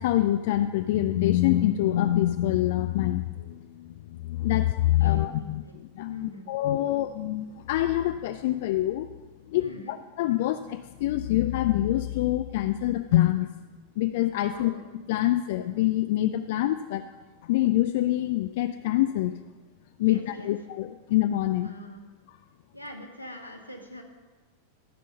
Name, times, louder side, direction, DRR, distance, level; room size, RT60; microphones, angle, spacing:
voice 1, 0.0-5.6 6.0-9.1 9.5-13.5 14.0-14.7 15.1-17.0 17.4-19.3 20.0-21.7, left 14 dB, 50° left, 9 dB, 0.3 m, -25 dB
voice 2, 5.0-5.7 6.1-6.5 9.6-9.9 14.4-14.8 20.0-20.5 21.6-22.0 22.7-24.0, left 1 dB, 90° left, 1 dB, 1.5 m, -43 dB
13.5 x 5.2 x 5.5 m, 1.3 s
figure-of-eight pair, 90°, 0 cm